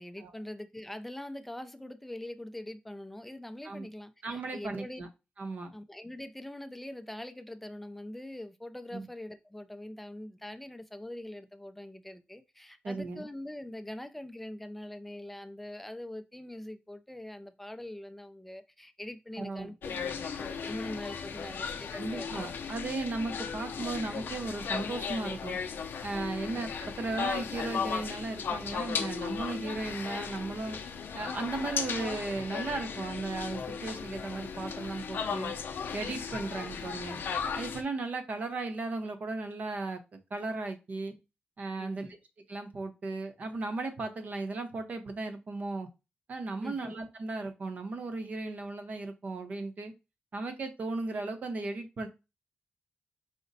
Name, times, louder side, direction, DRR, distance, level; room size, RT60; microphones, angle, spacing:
voice 1, 0.0-5.0 5.7-22.3 23.1-23.2 26.4-26.6 41.8-42.2 46.6-47.0, left 1 dB, 5° left, 0.4 m, -43 dB
voice 2, 4.2-5.1 5.4-5.7 8.9-9.1 12.8-13.3 19.4-19.7 21.9-25.6 26.0-30.8 31.1-35.5 35.9-37.2 37.5-41.2 41.6-42.1 42.5-45.9 46.3-49.9 50.3-52.1, right 3 dB, 45° right, 0.7 m, -36 dB
sound 1, 19.8-37.8, left 6 dB, 80° left, 0.5 m, -36 dB
5.0 x 2.1 x 4.0 m
wide cardioid pair, 165°, 4 cm